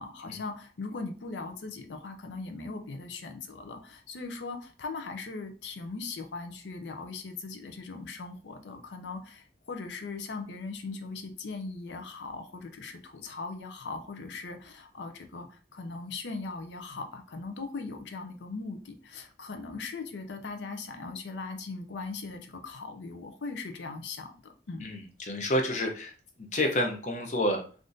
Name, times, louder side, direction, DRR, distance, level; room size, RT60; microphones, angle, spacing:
voice 1, 0.0-24.9, left 3 dB, 85° left, 6 dB, 0.5 m, -39 dB
voice 2, 24.8-26.1 26.5-27.6, left 1 dB, 40° left, 3 dB, 0.7 m, -29 dB
3.5 x 2.5 x 2.6 m, 0.38 s
head